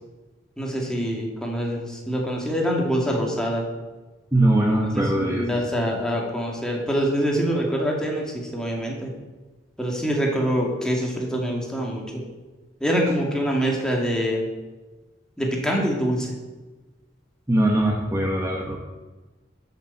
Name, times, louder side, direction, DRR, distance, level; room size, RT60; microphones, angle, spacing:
voice 1, 0.6-3.6 4.9-9.1 9.8-12.2 12.8-14.4 15.4-16.3, equal, 5° left, -1 dB, 2.3 m, -25 dB
voice 2, 4.3-5.6 17.5-18.8, right 1 dB, 15° right, 0 dB, 1.1 m, -21 dB
12.5 x 7.0 x 5.8 m, 1.2 s
head